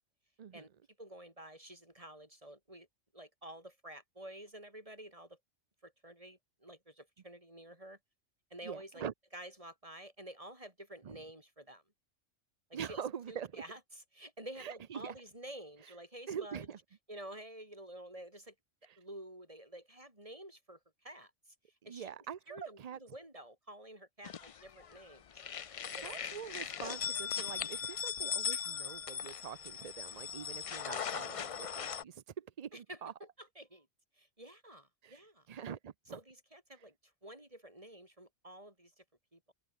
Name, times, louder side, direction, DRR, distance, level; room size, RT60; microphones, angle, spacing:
voice 1, 1.0-2.9 3.1-5.4 5.8-8.0 8.5-9.0 9.3-11.8 12.7-16.7 17.1-18.5 19.0-22.1 22.5-25.4 25.9-26.3 28.5-28.7 32.7-33.9 34.1-35.5 36.1-39.0 39.3-39.5, right 1 dB, 25° right, 6.6 m, -50 dB
voice 2, 8.6-9.1 11.0-11.2 12.7-13.6 14.6-15.1 16.3-16.8 21.9-23.0 25.9-33.1 35.0-35.2 35.5-36.2, right 8 dB, 50° right, 0.5 m, -44 dB
sound 1, 24.2-25.0 25.3-32.0, left 7 dB, 65° left, 0.3 m, -39 dB
open air
omnidirectional pair, 1.3 m